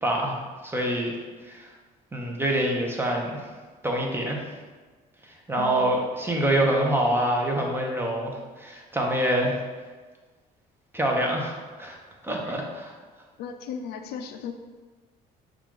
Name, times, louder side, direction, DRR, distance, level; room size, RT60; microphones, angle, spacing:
voice 1, 0.0-1.1 1.4-1.7 2.1-3.4 3.8-4.4 5.5-9.6 10.9-12.0 12.2-13.0, right 1 dB, 15° right, 0 dB, 0.8 m, -26 dB
voice 2, 5.5-6.0 12.5-12.6 13.4-14.5, left 7 dB, 75° left, 7 dB, 0.4 m, -36 dB
5.8 x 2.4 x 3.7 m, 1.4 s
cardioid pair, 110°, 17 cm